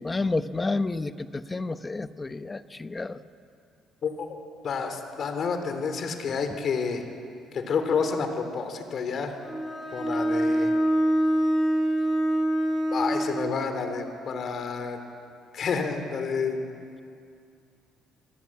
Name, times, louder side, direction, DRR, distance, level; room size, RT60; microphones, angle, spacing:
voice 1, 0.0-3.2, left 3 dB, 20° left, 12 dB, 0.9 m, -30 dB
voice 2, 4.0-4.4 4.6-7.0 7.5-9.4 9.9-10.7 12.9-15.0 15.5-16.6, left 5 dB, 50° left, 7 dB, 3.3 m, -29 dB
Bowed string instrument, 9.4-13.4, right 1 dB, 5° left, 7.4 m, -24 dB
28.0 x 19.5 x 8.6 m, 2.4 s
cardioid pair, 120°, 0 cm